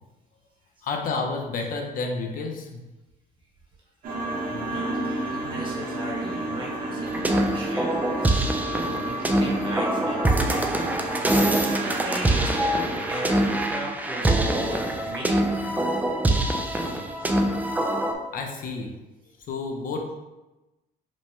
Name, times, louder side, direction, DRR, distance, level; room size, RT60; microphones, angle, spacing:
voice 1, 0.8-2.8 18.3-19.0 19.5-20.1, left 4 dB, 55° left, 2 dB, 0.6 m, -30 dB
sound 1, 4.0-13.5, right 1 dB, 60° right, 1.0 m, -31 dB
voice 2, 4.5-10.6 11.4-15.9 16.8-16.9 17.2-17.3, right 1 dB, 30° right, -2 dB, 1.3 m, -37 dB
sound 2, 7.1-18.1, right 1 dB, 10° right, 0.4 m, -24 dB
5.1 x 2.1 x 3.5 m, 1.0 s
cardioid pair, 110°, 17 cm